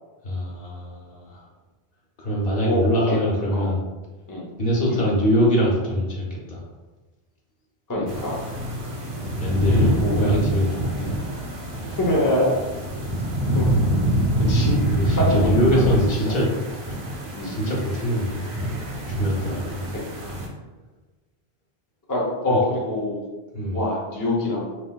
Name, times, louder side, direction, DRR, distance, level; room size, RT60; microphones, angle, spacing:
voice 1, 0.2-1.4 2.2-3.8 4.6-6.6 9.4-10.9 14.8-16.5 17.4-18.4 19.1-19.8 22.5-22.6 23.5-23.8, equal, 60° left, -4 dB, 1.2 m, -23 dB
voice 2, 2.7-3.2 3.5-3.7 4.3-4.5 4.9-5.1 7.9-8.4 9.7-10.1 11.0-11.2 12.0-12.5 13.5-13.7 14.5-14.7 15.2-15.8 16.3-16.4 17.4-17.6 20.2-20.3 22.1-23.2 23.7-24.7, left 1 dB, 20° left, -3 dB, 0.7 m, -24 dB
sound 1, 8.1-20.5, right 1 dB, 60° right, 1.1 m, -26 dB
5.8 x 2.8 x 2.3 m, 1.2 s
omnidirectional pair, 1.1 m